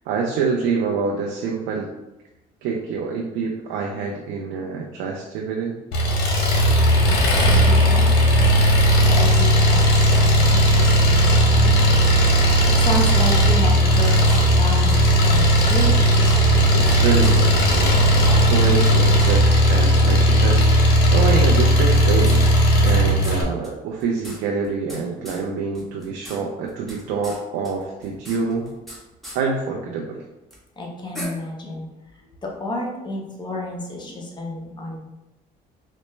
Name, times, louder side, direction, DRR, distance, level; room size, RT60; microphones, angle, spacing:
voice 1, 0.1-1.9 2.6-5.8 16.7-20.6 21.1-22.4 22.8-28.7 29.3-30.2, right 5 dB, 90° right, 0 dB, 0.5 m, -26 dB
Engine, 5.9-23.4, equal, 75° left, 0.9 m, -16 dB
voice 2, 7.3-8.2 9.0-11.7 12.8-16.0 30.8-31.9 32.4-35.0, left 1 dB, 25° left, -1 dB, 0.8 m, -30 dB
sound 1, 14.3-15.0 15.2-15.4 15.7-15.8 16.1-16.9 17.2-17.3 17.7-17.8 18.1-18.9 19.2-19.3 19.7-19.8 20.6-20.7 21.8-23.0 23.2-23.4 23.6-23.7 24.0-25.0 25.2-25.4 25.7-26.4 26.6-27.4 27.6-29.0 29.2-29.4 30.5-30.6 31.1-31.2, equal, ahead, 1.1 m, -37 dB
4.1 x 2.1 x 3.1 m, 0.98 s
cardioid pair, 110°, 17 cm